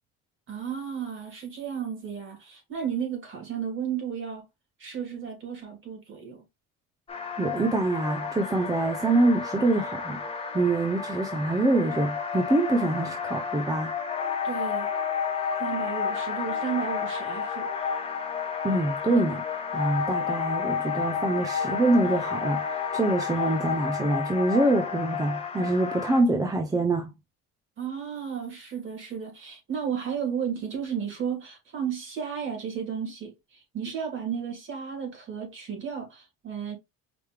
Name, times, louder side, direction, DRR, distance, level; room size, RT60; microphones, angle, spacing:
voice 1, 0.5-4.4 4.8-6.4 14.4-14.9 15.6-17.7 27.8-36.8, right 7 dB, 35° right, 2.8 m, -33 dB
sound 1, 7.1-26.2, left 6 dB, 15° left, 1.0 m, -31 dB
voice 2, 7.4-10.2 10.5-13.9 18.6-22.6 22.9-27.1, right 2 dB, 10° right, 0.5 m, -25 dB
5.0 x 3.2 x 3.2 m
cardioid pair, 145°, 34 cm